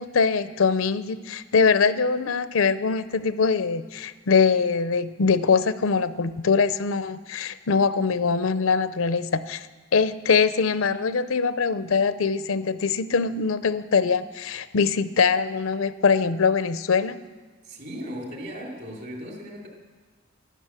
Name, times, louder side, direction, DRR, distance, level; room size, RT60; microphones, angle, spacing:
voice 1, 0.0-9.6 9.9-17.2, left 5 dB, 80° left, 14 dB, 0.6 m, -23 dB
voice 2, 17.6-19.7, equal, 55° right, 0 dB, 3.1 m, -37 dB
12.0 x 12.0 x 7.5 m, 1.4 s
head